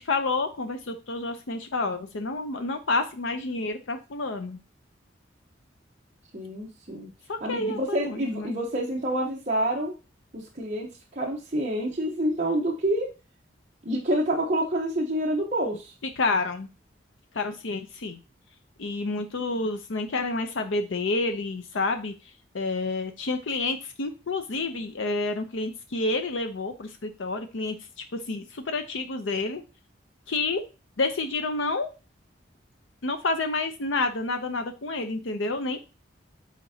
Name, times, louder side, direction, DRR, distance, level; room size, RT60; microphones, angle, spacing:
voice 1, 0.0-4.6 7.3-8.5 16.2-16.7 17.3-18.2 18.8-22.1 22.5-27.8 28.1-29.6 30.3-30.6 31.0-31.9 33.0-35.8, left 3 dB, 90° left, 6 dB, 0.7 m, -29 dB
voice 2, 6.3-7.1 7.4-9.9 10.3-13.1 13.8-15.9, right 1 dB, 40° right, -3 dB, 1.0 m, -28 dB
8.4 x 4.4 x 2.8 m, 0.30 s
head